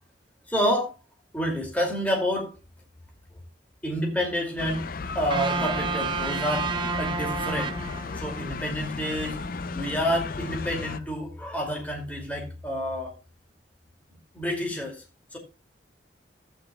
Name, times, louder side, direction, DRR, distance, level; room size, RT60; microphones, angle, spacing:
voice 1, 0.5-0.9 1.3-2.6 3.8-4.8 5.1-7.7 8.1-9.4 9.7-13.1 14.3-15.0 15.3-15.4, equal, 10° left, 2.5 m, -28 dB
sound 1, 4.6-11.0, left 4 dB, 55° left, 0.5 m, -35 dB
sound 2, 5.3-8.5, right 4 dB, 25° right, 0.8 m, -30 dB
14.0 x 9.6 x 2.3 m
head